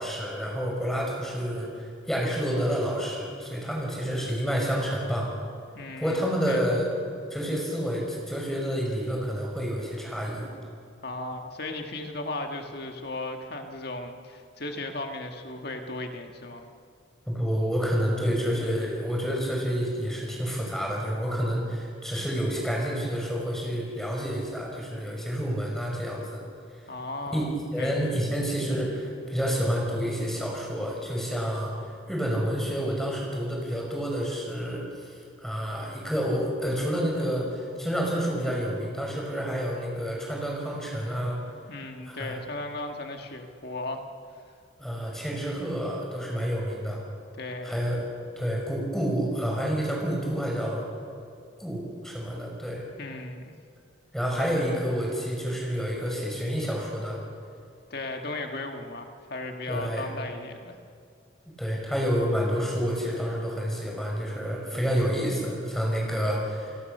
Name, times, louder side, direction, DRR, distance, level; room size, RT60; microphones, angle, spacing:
voice 1, 0.0-5.3 6.0-6.9 7.3-10.5 17.3-26.4 27.3-35.1 35.4-41.4 42.0-42.4 44.8-47.0 47.6-48.0 48.4-50.8 51.6-52.8 54.1-57.2 59.7-60.1 61.6-66.8, equal, ahead, -2 dB, 5.7 m, -29 dB
voice 2, 5.7-6.7 11.0-16.6 26.9-28.2 41.7-44.0 47.3-47.8 53.0-53.5 57.9-60.8, left 2 dB, 50° left, 4 dB, 1.7 m, -36 dB
29.5 x 18.5 x 6.7 m, 2.4 s
head